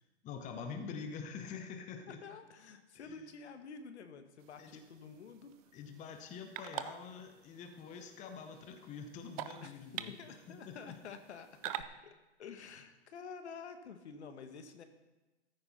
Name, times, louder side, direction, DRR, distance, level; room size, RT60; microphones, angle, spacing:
voice 1, 0.2-2.2 2.9-3.3 4.6-4.8 5.7-10.1 10.5-11.0, left 6 dB, 20° left, 6 dB, 1.0 m, -46 dB
voice 2, 2.2-5.5 9.6-14.8, left 5 dB, 70° left, 8 dB, 1.4 m, -50 dB
sound 1, 4.4-11.8, right 13 dB, 30° right, 0.5 m, -47 dB
14.0 x 9.6 x 4.2 m, 1.1 s
hypercardioid pair, 130°, 35 cm